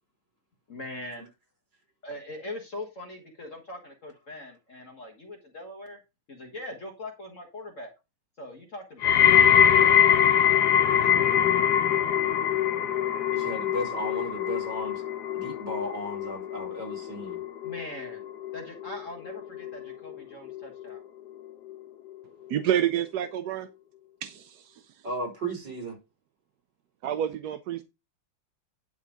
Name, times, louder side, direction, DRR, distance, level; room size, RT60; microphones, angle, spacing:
voice 1, 0.7-1.2 2.0-6.0 6.3-7.9 8.4-9.5 9.8-11.6 17.6-18.2 18.5-21.0, left 1 dB, 40° left, 1.6 m, -42 dB
sound 1, 9.0-20.1 20.5-21.0 21.7-21.8, left 9 dB, 60° left, 1.2 m, -23 dB
voice 2, 13.3-15.0 15.3-17.4 25.0-26.0, right 1 dB, 50° right, 4.5 m, -35 dB
voice 3, 22.5-23.7 24.2-24.7 27.0-27.8, right 10 dB, 70° right, 0.9 m, -28 dB
11.0 x 4.0 x 5.0 m
omnidirectional pair, 2.3 m